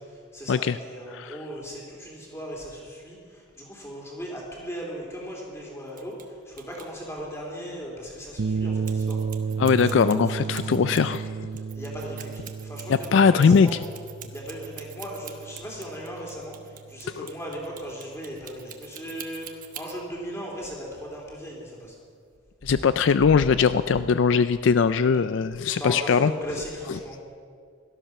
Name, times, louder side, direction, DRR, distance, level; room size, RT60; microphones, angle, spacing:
voice 1, 0.3-6.1 6.5-9.2 9.8-10.9 11.7-13.8 14.3-21.9 25.7-27.2, equal, 15° left, -2 dB, 3.4 m, -37 dB
voice 2, 1.1-1.4 9.6-11.3 12.9-13.8 17.2-17.3 22.6-26.3 26.9-27.0, left 5 dB, 65° left, 13 dB, 0.4 m, -21 dB
sound 1, 5.9-6.2 6.6-6.9 8.8-11.2 11.5-20.0, right 11 dB, 40° right, 1.1 m, -44 dB
sound 2, 8.4-16.9, right 5 dB, 60° right, 0.6 m, -32 dB
17.5 x 13.5 x 6.0 m, 2.2 s
head